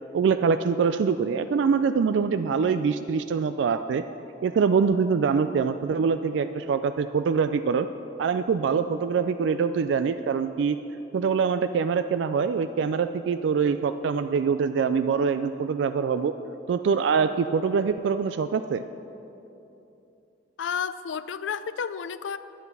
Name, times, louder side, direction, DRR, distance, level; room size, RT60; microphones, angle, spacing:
voice 1, 0.1-4.0 4.4-7.9 8.2-10.8 11.1-16.3 16.7-18.8, right 6 dB, 75° right, 10 dB, 0.3 m, -24 dB
voice 2, 20.6-22.4, left 7 dB, 85° left, 14 dB, 0.4 m, -31 dB
10.0 x 9.3 x 5.4 m, 2.9 s
head